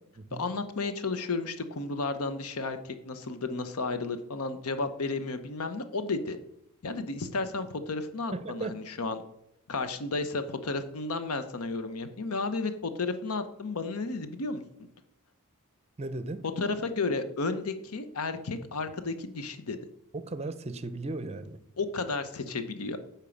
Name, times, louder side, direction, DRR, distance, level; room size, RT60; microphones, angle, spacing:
voice 1, 0.3-6.4 6.8-9.2 9.7-14.9 16.6-19.8 21.8-23.0, left 3 dB, 80° left, 10 dB, 0.8 m, -33 dB
voice 2, 8.3-8.8 16.0-16.4 20.1-21.6, right 2 dB, 30° right, 13 dB, 0.6 m, -36 dB
10.0 x 4.5 x 7.1 m, 0.76 s
head